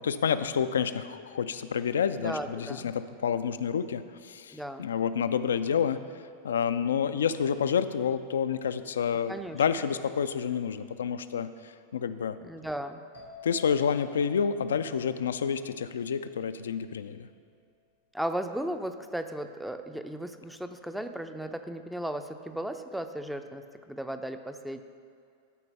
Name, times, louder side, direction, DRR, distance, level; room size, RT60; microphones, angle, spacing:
voice 1, 0.0-6.0 6.4-11.5 11.9-12.4 13.4-17.3, left 7 dB, 65° left, 12 dB, 0.4 m, -29 dB
voice 2, 2.2-2.9 4.5-4.9 9.3-9.6 12.4-13.0 18.1-24.8, right 1 dB, ahead, 8 dB, 0.5 m, -36 dB
sound 1, 13.1-16.8, left 4 dB, 90° right, 1.9 m, -51 dB
13.0 x 4.5 x 5.5 m, 2.4 s
figure-of-eight pair, 90°, 0 cm